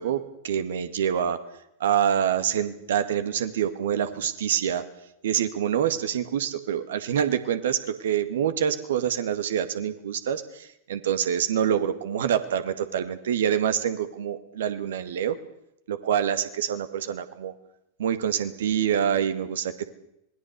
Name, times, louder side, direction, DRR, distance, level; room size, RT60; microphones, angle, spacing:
voice 1, 0.0-1.4 1.8-4.9 5.2-15.4 15.9-17.5 18.0-19.8, right 9 dB, 60° right, 11 dB, 2.0 m, -26 dB
26.0 x 21.0 x 6.8 m, 0.80 s
figure-of-eight pair, 90°, 0 cm